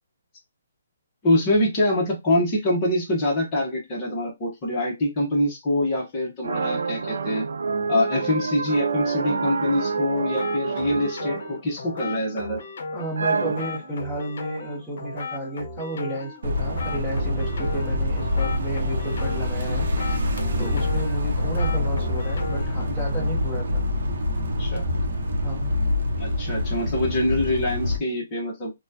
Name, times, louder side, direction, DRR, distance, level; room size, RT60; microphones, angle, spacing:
voice 1, 1.2-7.4 7.9-12.6 24.6-24.9 26.2-28.7, left 1 dB, 20° left, 1.2 m, -24 dB
sound 1, 6.4-11.6 12.0-12.7 13.2-13.9, right 4 dB, 85° right, 0.5 m, -28 dB
sound 2, 9.8-22.9, left 3 dB, 50° left, 0.9 m, -37 dB
voice 2, 12.9-19.9 20.6-23.8 25.4-25.7, right 1 dB, ahead, 1.3 m, -32 dB
sound 3, 16.4-28.0, left 1 dB, 60° right, 0.9 m, -25 dB
4.1 x 2.4 x 2.7 m
hypercardioid pair, 175°, 0 cm